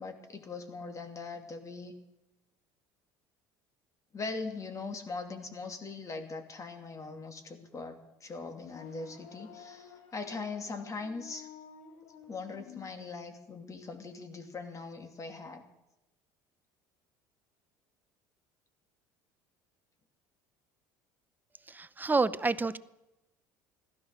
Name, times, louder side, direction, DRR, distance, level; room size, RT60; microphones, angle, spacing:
voice 1, 0.0-1.9 4.1-11.5 12.3-15.6, left 4 dB, 30° left, 2.7 m, -41 dB
sound 1, 8.5-12.9, left 7 dB, 75° left, 2.2 m, -51 dB
voice 2, 21.7-22.8, right 3 dB, 20° right, 0.7 m, -28 dB
16.0 x 13.0 x 6.8 m
hypercardioid pair, 75°, 10 cm